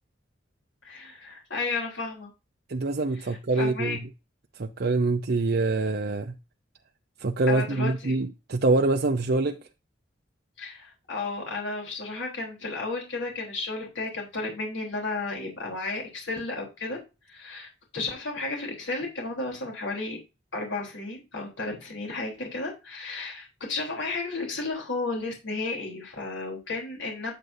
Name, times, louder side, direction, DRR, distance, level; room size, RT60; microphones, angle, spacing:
voice 1, 0.8-2.3 3.2-4.0 7.5-8.1 10.6-17.0 17.3-20.2 20.5-27.3, left 3 dB, 80° left, 3.5 m, -33 dB
voice 2, 2.7-4.0 4.6-6.4 7.2-9.6, right 2 dB, 55° right, 0.6 m, -25 dB
9.0 x 7.9 x 2.7 m
head